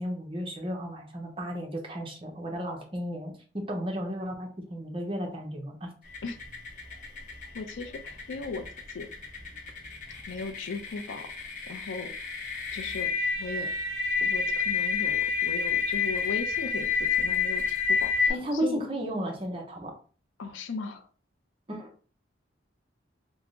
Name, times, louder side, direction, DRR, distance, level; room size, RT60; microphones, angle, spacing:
voice 1, 0.0-5.9 18.3-20.0 21.7-21.9, equal, 30° right, 2 dB, 0.6 m, -34 dB
sound 1, 6.1-18.3, left 5 dB, 45° left, 0.8 m, -29 dB
voice 2, 7.5-9.1 10.3-11.3 11.7-12.1 12.7-13.7 14.2-18.8 20.4-21.1, left 4 dB, 85° left, 8 dB, 0.5 m, -37 dB
3.5 x 2.0 x 3.6 m, 0.40 s
head